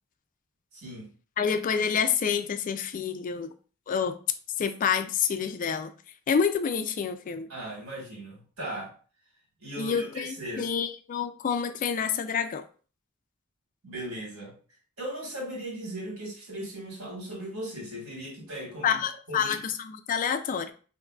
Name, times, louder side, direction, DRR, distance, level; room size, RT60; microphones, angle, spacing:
voice 1, 0.7-1.1 7.5-8.9 9.6-10.7 13.8-14.6 15.0-19.0 19.3-19.6, right 1 dB, 85° right, -2 dB, 1.6 m, -38 dB
voice 2, 1.4-3.5 3.9-4.2 4.6-5.9 6.3-7.5 9.8-12.7 18.8-20.7, left 7 dB, 40° left, 9 dB, 0.3 m, -28 dB
3.6 x 3.0 x 2.3 m, 0.39 s
head